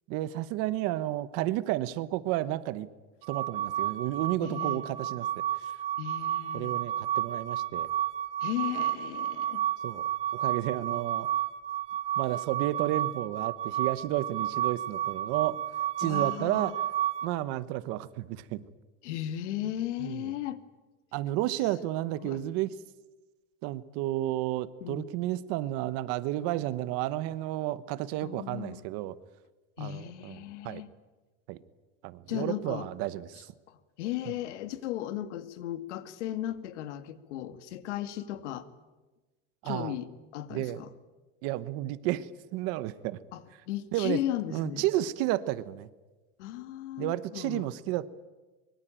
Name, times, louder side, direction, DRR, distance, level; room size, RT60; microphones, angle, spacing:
voice 1, 0.1-2.9 3.3-5.7 6.5-7.9 9.8-10.0 10.3-11.3 12.2-15.6 16.0-16.8 17.2-18.6 20.0-20.3 21.1-22.7 23.6-29.1 29.8-30.4 30.6-30.8 31.5-31.6 32.0-33.5 34.3-34.4 39.6-39.9 40.5-40.8 41.4-43.2 43.9-44.2 44.5-45.9 47.0-48.1, right 15 dB, 40° right, 16 dB, 1.0 m, -32 dB
sound 1, 3.2-17.3, right 11 dB, 20° right, 0.8 m, -31 dB
voice 2, 4.4-4.8 6.0-6.7 8.4-9.6 16.0-16.7 19.0-20.6 22.2-22.4 24.8-25.1 28.2-28.8 29.8-30.9 32.3-32.9 33.7-38.7 39.6-40.9 43.3-44.8 46.4-47.7, left 12 dB, 90° left, 11 dB, 2.0 m, -36 dB
24.5 x 23.0 x 9.0 m, 1.2 s
supercardioid pair, 170°, 34 cm